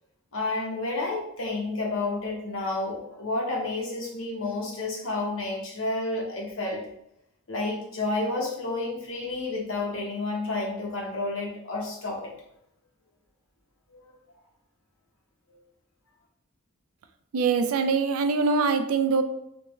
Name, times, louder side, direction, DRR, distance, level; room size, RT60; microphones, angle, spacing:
voice 1, 0.3-6.8 7.5-12.3 13.9-14.0 15.5-15.6, left 2 dB, 75° left, -2 dB, 0.9 m, -30 dB
voice 2, 17.3-19.2, right 4 dB, 90° right, 8 dB, 0.4 m, -23 dB
3.3 x 2.2 x 3.0 m, 0.79 s
head